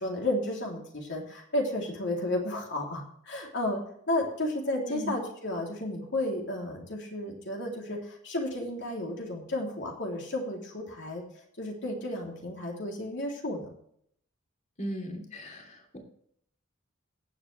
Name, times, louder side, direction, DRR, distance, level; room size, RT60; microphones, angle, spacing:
voice 1, 0.0-3.8 4.1-11.2 11.6-13.7, left 1 dB, 60° left, 0 dB, 3.3 m, -32 dB
voice 2, 14.8-16.0, equal, 35° left, 2 dB, 3.0 m, -37 dB
18.0 x 8.0 x 3.4 m, 0.67 s
head